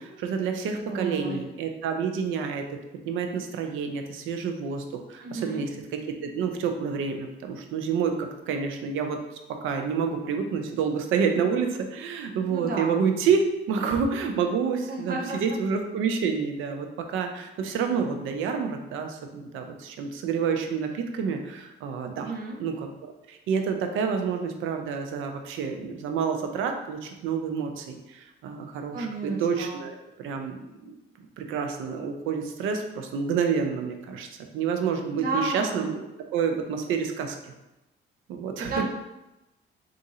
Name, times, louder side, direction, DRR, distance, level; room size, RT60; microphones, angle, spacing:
voice 1, 0.0-2.7 3.1-9.2 9.5-22.3 22.6-30.6 30.8-30.9 31.4-34.3 34.5-36.1 36.3-37.5 38.3-38.8, right 6 dB, 90° right, 5 dB, 0.6 m, -28 dB
voice 2, 0.9-1.4 5.2-5.7 12.5-13.0 14.9-15.4 22.2-22.6 28.9-29.8 35.2-35.9 38.7-38.9, right 3 dB, 50° right, -1 dB, 0.7 m, -32 dB
3.7 x 2.5 x 4.2 m, 0.95 s
cardioid pair, 90°, 20 cm